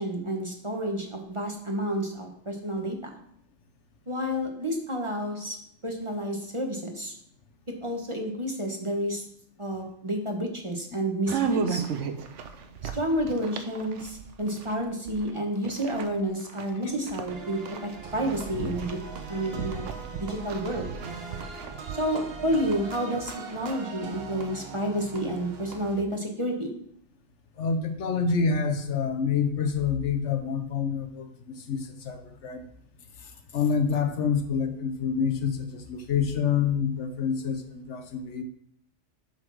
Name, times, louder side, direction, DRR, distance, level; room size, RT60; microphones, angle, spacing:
voice 1, 0.0-3.1 4.1-5.6 5.8-7.1 7.8-9.2 9.6-11.8 12.9-19.0 19.3-19.9 20.1-20.9 21.9-26.7, equal, 25° right, 1 dB, 1.1 m, -30 dB
sound 1, 11.3-15.3 15.6-22.0, right 7 dB, 70° right, 1.0 m, -35 dB
sound 2, 17.3-26.0, right 5 dB, 55° right, 1.2 m, -40 dB
voice 2, 27.6-31.3 31.6-32.7 33.5-38.4, left 6 dB, 70° left, 7 dB, 1.1 m, -27 dB
7.6 x 4.4 x 6.2 m, 0.67 s
omnidirectional pair, 1.3 m